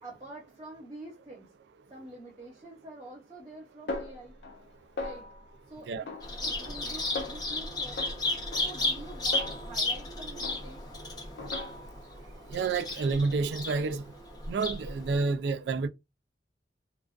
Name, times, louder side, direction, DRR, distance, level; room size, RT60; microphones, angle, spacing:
voice 1, 0.0-1.5 1.9-4.3 5.0-5.3 5.7-6.1 6.4-8.0 8.5-11.2, right 1 dB, 30° right, 0.8 m, -47 dB
Snare drum, 3.9-4.7 5.0-5.5 6.1-6.8 7.2-7.5 8.0-10.1 10.4-10.9 11.4-12.1, left 3 dB, 70° left, 0.4 m, -40 dB
Bird vocalization bird call bird song, 6.2-15.2, left 2 dB, 20° left, 0.6 m, -34 dB
voice 2, 12.5-14.0 14.5-15.9, right 4 dB, 70° right, 0.3 m, -29 dB
2.3 x 2.2 x 2.4 m
head